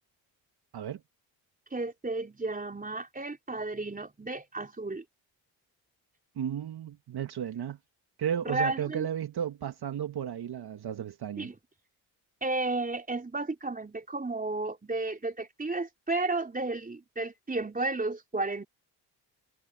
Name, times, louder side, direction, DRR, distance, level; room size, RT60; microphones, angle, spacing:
voice 1, 1.7-5.0 8.4-9.1 11.4-11.6 12.4-18.6, right 2 dB, 20° right, 4.2 m, -33 dB
voice 2, 6.4-7.8 8.2-11.5, right 9 dB, 60° right, 1.7 m, -34 dB
cardioid pair, 85°, 45 cm